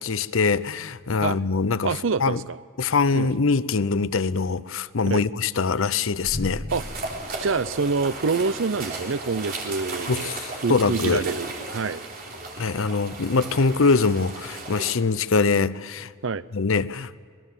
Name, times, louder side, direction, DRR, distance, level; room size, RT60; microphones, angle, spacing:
voice 1, 0.0-1.9 2.2-2.4 2.8-6.7 10.1-11.2 12.6-16.1 16.5-17.2, left 4 dB, 70° left, 0.7 m, -23 dB
voice 2, 1.8-2.6 3.1-3.3 5.1-5.2 6.7-6.8 7.4-10.3 10.6-12.0 16.2-16.4, right 4 dB, 65° right, 0.6 m, -26 dB
sound 1, 6.2-8.5, left 1 dB, 30° left, 0.9 m, -36 dB
sound 2, 6.7-14.9, right 3 dB, 45° right, 3.5 m, -35 dB
26.0 x 20.0 x 7.4 m
head